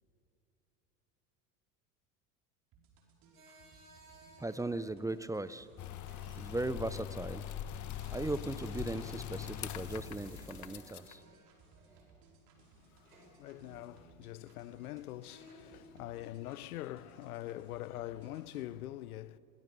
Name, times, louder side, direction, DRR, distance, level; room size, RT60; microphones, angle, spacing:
sound 1, 2.7-18.7, right 4 dB, 50° right, 5.0 m, -63 dB
sound 2, 3.4-17.2, right 1 dB, 85° right, 5.9 m, -61 dB
voice 1, 4.4-5.7 6.4-7.5 8.1-11.2, right 2 dB, 5° right, 0.6 m, -38 dB
sound 3, 5.8-11.1, left 10 dB, 40° left, 1.3 m, -42 dB
voice 2, 12.6-19.4, left 14 dB, 75° left, 0.8 m, -44 dB
24.5 x 22.0 x 6.8 m
hypercardioid pair, 80°, 44 cm